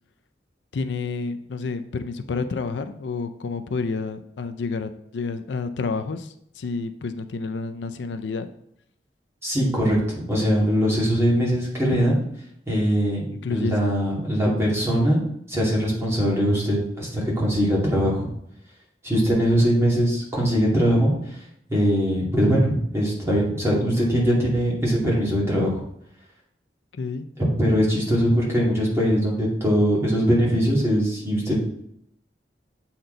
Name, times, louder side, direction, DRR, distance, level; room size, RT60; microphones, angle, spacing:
voice 1, 0.7-8.5 13.3-13.8 27.0-27.3, left 4 dB, 80° left, 9 dB, 0.4 m, -29 dB
voice 2, 9.4-12.2 12.7-13.2 13.5-15.2 15.5-18.3 19.0-21.1 21.7-25.8 27.6-31.5, equal, 15° right, -5 dB, 2.3 m, -21 dB
7.7 x 4.3 x 3.9 m, 0.74 s
head